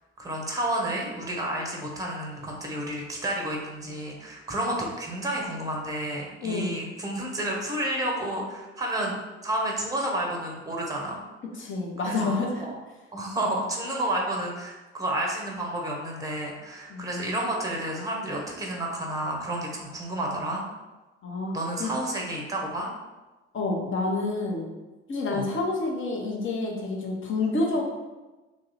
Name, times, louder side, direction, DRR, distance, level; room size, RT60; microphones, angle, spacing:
voice 1, 0.2-9.2 9.4-11.2 12.1-12.8 13.1-20.6 21.5-22.9 25.3-25.5, right 1 dB, 10° right, 0 dB, 0.9 m, -30 dB
voice 2, 6.4-6.8 11.6-12.7 16.9-17.4 21.2-21.5 21.8-21.9 23.5-24.7 25.1-27.8, left 3 dB, 35° left, -1 dB, 1.0 m, -28 dB
3.0 x 2.7 x 4.1 m, 1.1 s
figure-of-eight pair, 50°, 35 cm